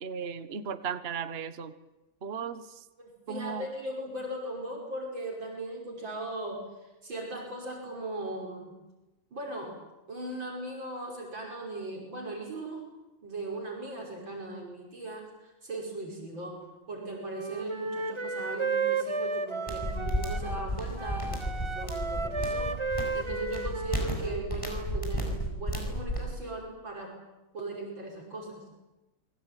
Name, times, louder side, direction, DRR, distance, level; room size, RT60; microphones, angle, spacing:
voice 1, 0.0-1.7 2.2-2.8 3.3-3.7, right 6 dB, 35° right, 11 dB, 1.3 m, -36 dB
voice 2, 3.0-8.8 9.3-9.8 10.1-12.8 13.2-16.6 16.9-27.2 27.5-28.6, right 2 dB, 65° right, 0 dB, 6.4 m, -38 dB
Wind instrument woodwind instrument, 17.2-20.7 21.0-24.5, right 4 dB, 20° right, 1.0 m, -33 dB
sound 1, 19.7-26.2, equal, 15° left, 6.8 m, -33 dB
27.5 x 22.5 x 9.2 m, 1.0 s
omnidirectional pair, 2.2 m